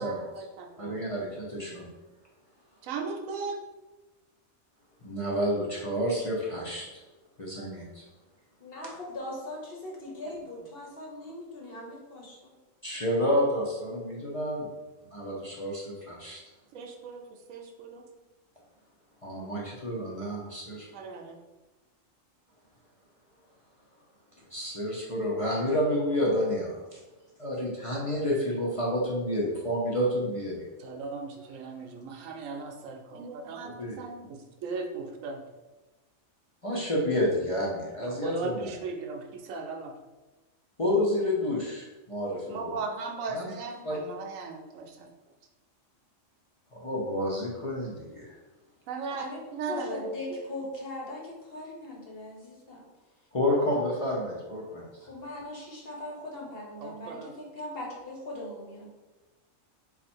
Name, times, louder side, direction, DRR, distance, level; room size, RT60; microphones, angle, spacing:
voice 1, 0.0-1.0 2.8-3.6 10.2-10.4 16.7-18.1 20.9-21.4 30.8-35.4 38.0-39.9 42.5-45.1 48.9-50.2 56.8-57.3, right 4 dB, 85° right, 4 dB, 1.0 m, -37 dB
voice 2, 0.8-1.9 5.0-6.9 7.4-8.0 12.8-14.7 15.1-16.4 19.2-20.9 24.5-27.0 27.4-30.7 33.8-34.0 36.6-38.7 40.8-42.7 43.3-43.5 43.8-44.0 46.7-48.3 53.3-54.9, equal, 35° left, -5 dB, 0.6 m, -29 dB
voice 3, 8.6-12.5 49.1-52.8 55.0-58.9, left 1 dB, 50° left, -2 dB, 1.1 m, -40 dB
4.2 x 2.5 x 4.3 m, 1.1 s
omnidirectional pair, 1.3 m